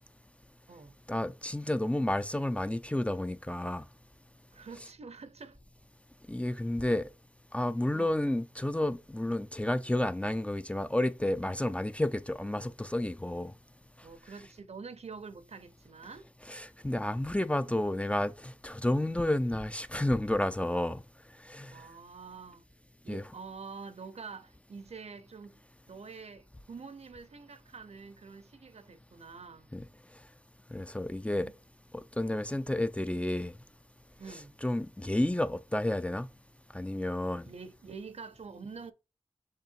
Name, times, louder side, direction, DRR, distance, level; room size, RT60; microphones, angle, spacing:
voice 1, 1.1-3.8 6.3-7.1 7.5-13.5 16.5-21.0 21.4-21.7 23.1-23.2 29.7-29.8 30.7-31.5 31.9-33.5 34.6-36.3 36.7-37.5, left 1 dB, 10° left, 0.4 m, -31 dB
voice 2, 4.5-5.6 6.8-6.9 7.9-8.2 14.0-16.3 21.7-22.6 23.0-25.6 25.9-29.7 31.3-31.5 34.2-34.6 37.4-38.9, right 5 dB, 75° right, 0.7 m, -46 dB
6.7 x 3.0 x 2.6 m
cardioid pair, 50°, 11 cm